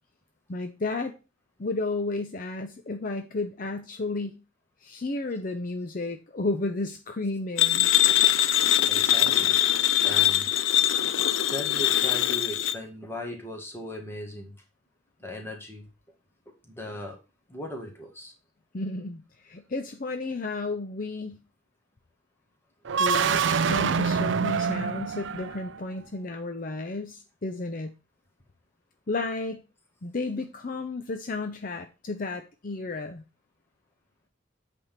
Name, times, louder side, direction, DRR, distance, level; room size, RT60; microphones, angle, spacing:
voice 1, 0.5-1.1 1.6-4.4 4.8-7.9 18.7-21.4 23.0-27.9 29.1-29.6 30.0-33.2, left 3 dB, 45° left, 6 dB, 0.6 m, -32 dB
sound 1, 7.6-12.8, left 12 dB, 90° left, 0.5 m, -22 dB
voice 2, 8.9-9.5 10.0-10.5 11.0-11.1 11.5-14.5 15.2-15.9 16.6-17.2 17.5-18.3, left 1 dB, 15° left, 1 dB, 1.7 m, -38 dB
sound 2, 22.8-25.8, right 6 dB, 75° right, 0.5 m, -26 dB
8.4 x 3.6 x 5.8 m, 0.30 s
head